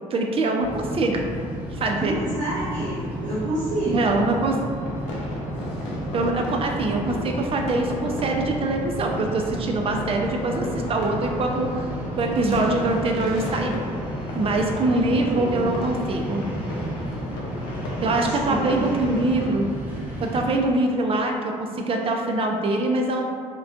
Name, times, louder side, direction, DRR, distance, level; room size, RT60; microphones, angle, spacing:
voice 1, 0.1-1.2 1.7-2.2 3.9-4.6 6.1-11.9 12.2-13.8 14.4-16.5 18.0-19.7 20.2-23.2, right 2 dB, 40° right, 2 dB, 0.4 m, -24 dB
sound 1, 0.6-20.4, equal, 10° right, 1.0 m, -32 dB
voice 2, 1.9-4.3 15.0-15.8 18.0-18.9, right 1 dB, 90° right, -10 dB, 0.7 m, -30 dB
sound 2, 4.8-19.5, left 1 dB, 85° left, 0.4 m, -36 dB
2.4 x 2.2 x 2.4 m, 2.1 s
hypercardioid pair, 60°, 15 cm